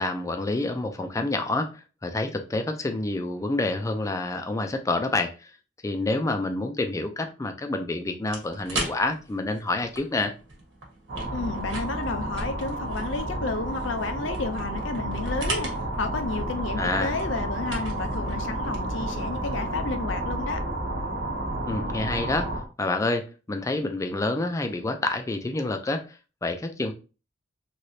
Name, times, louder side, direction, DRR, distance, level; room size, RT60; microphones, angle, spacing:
voice 1, 0.0-5.5 5.8-10.3 16.8-17.1 21.7-22.5 22.8-26.9, left 2 dB, 15° left, 0.3 m, -28 dB
sound 1, 8.2-19.4, right 2 dB, 85° right, 1.1 m, -39 dB
sound 2, 11.1-22.7, right 1 dB, 65° right, 0.9 m, -31 dB
voice 2, 11.3-15.7 16.0-20.6, left 3 dB, 80° left, 0.5 m, -31 dB
3.1 x 2.9 x 2.7 m
head